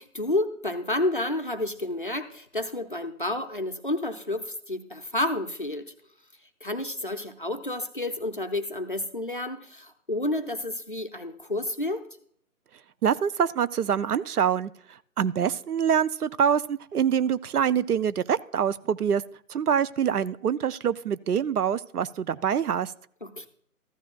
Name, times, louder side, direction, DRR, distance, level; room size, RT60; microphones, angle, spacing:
voice 1, 0.0-5.9 6.6-12.0 23.2-23.5, left 1 dB, 35° left, 6 dB, 0.5 m, -30 dB
voice 2, 13.0-14.7 15.2-19.2 19.5-22.9, right 8 dB, 75° right, 17 dB, 0.6 m, -25 dB
14.0 x 13.0 x 2.3 m, 0.64 s
figure-of-eight pair, 155°, 45 cm